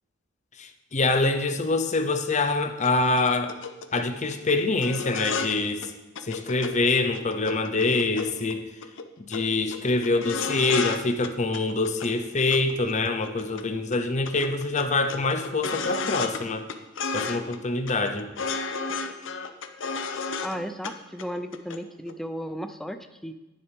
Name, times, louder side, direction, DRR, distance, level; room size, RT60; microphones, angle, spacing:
voice 1, 0.6-3.5 3.9-5.9 6.2-8.7 9.2-16.7 17.1-18.3, left 3 dB, 40° left, 7 dB, 0.8 m, -25 dB
sound 1, 2.8-2.9 3.2-3.3 3.5-4.0 4.3-4.5 4.8-5.6 5.8-5.9 6.2-6.7 7.0-8.5 8.8-9.1 9.3-9.4 9.7-11.0 11.2-12.1 12.5-13.6 13.9-14.0 14.3-16.4 16.7-17.6 17.9-20.6 20.8-20.9 21.2-21.8 22.1-22.2, left 5 dB, 75° left, 0.7 m, -32 dB
voice 2, 20.4-23.3, equal, ahead, 8 dB, 0.5 m, -34 dB
10.0 x 9.9 x 3.5 m, 1.0 s
head